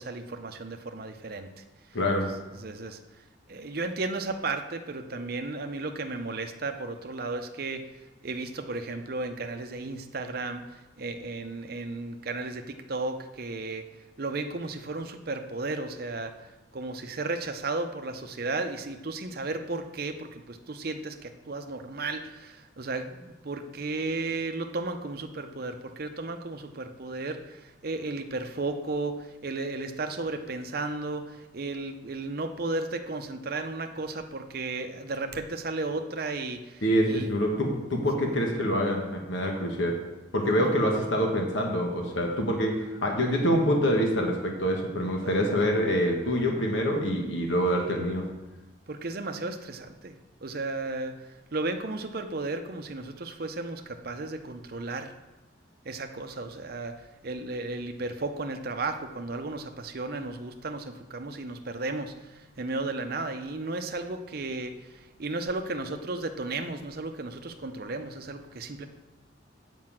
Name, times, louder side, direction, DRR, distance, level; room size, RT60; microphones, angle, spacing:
voice 1, 0.0-1.6 2.6-3.0 3.5-7.8 8.2-13.9 14.2-16.3 16.7-37.3 40.6-40.7 45.4-45.5 48.9-50.1 50.4-51.2 51.5-55.1 55.8-68.9, right 3 dB, 50° right, 6 dB, 0.7 m, -34 dB
voice 2, 1.9-2.3 36.8-39.9 40.3-48.3, equal, 75° left, 1 dB, 1.4 m, -26 dB
7.7 x 5.3 x 7.4 m, 1.1 s
head